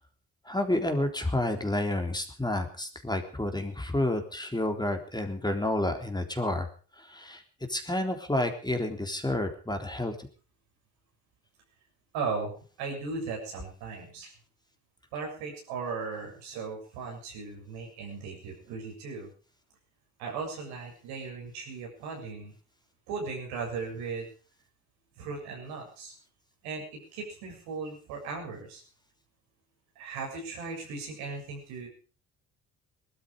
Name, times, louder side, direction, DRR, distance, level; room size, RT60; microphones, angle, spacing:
voice 1, 0.5-6.7 7.0-7.4 7.7-10.2, left 1 dB, 10° left, 5 dB, 3.7 m, -30 dB
voice 2, 12.1-14.3 15.1-19.3 20.2-22.5 23.1-24.3 25.2-26.1 26.6-28.8 30.0-31.9, right 4 dB, 80° right, 1 dB, 7.3 m, -37 dB
19.5 x 13.0 x 5.0 m, 0.40 s
hypercardioid pair, 55°, 37 cm